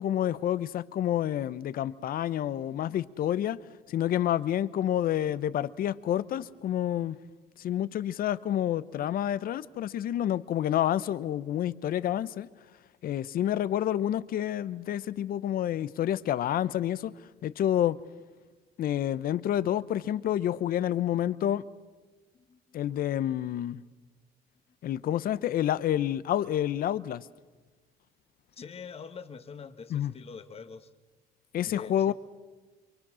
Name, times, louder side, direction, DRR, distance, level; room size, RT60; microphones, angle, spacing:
voice 1, 0.0-3.6 3.9-7.2 7.6-12.5 13.0-17.1 17.4-18.0 18.8-21.7 22.7-23.8 24.8-27.2 29.9-30.1 31.5-32.1, left 11 dB, 60° left, 0.8 m, -28 dB
voice 2, 22.3-22.8 28.5-30.9 31.6-32.1, left 6 dB, 35° left, 1.6 m, -45 dB
27.5 x 23.5 x 6.3 m
cardioid pair, 110°, 17 cm